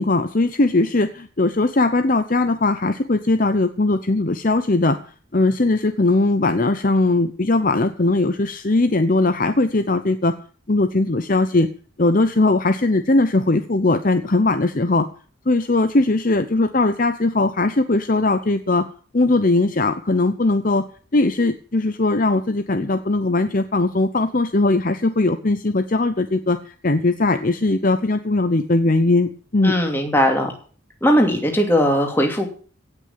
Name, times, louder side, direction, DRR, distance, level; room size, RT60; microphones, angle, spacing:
voice 1, 0.0-5.0 5.3-10.3 10.7-11.7 12.0-15.1 15.5-18.9 19.1-20.8 21.1-26.6 26.8-29.7, left 2 dB, 40° left, 10 dB, 0.8 m, -19 dB
voice 2, 29.6-30.5 31.0-32.5, equal, 10° left, 2 dB, 2.8 m, -18 dB
17.0 x 6.5 x 8.6 m, 0.42 s
head